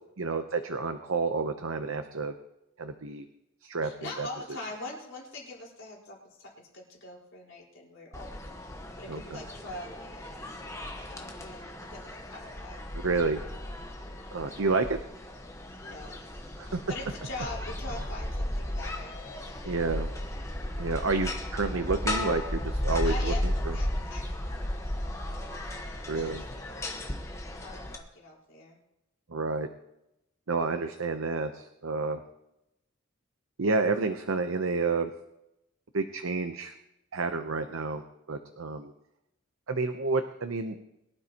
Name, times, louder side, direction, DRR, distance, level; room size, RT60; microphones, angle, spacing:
voice 1, 0.2-2.3 2.8-3.3 3.6-4.3 9.1-9.4 12.9-13.4 14.3-15.0 16.6-16.8 19.6-20.1 20.8-23.8 26.1-26.4 29.3-29.7 30.5-32.2 33.6-35.1 35.9-36.7 37.1-38.0 38.3-38.9 39.7-40.8, right 3 dB, 80° right, 7 dB, 0.8 m, -30 dB
voice 2, 3.8-8.3 9.0-12.9 15.8-16.2 16.6-19.2 23.0-25.7 26.0-26.9 27.5-28.8, left 2 dB, 60° left, -2 dB, 4.5 m, -43 dB
sound 1, 8.1-28.0, left 1 dB, 15° left, 1.2 m, -35 dB
22.5 x 12.0 x 2.9 m, 0.86 s
head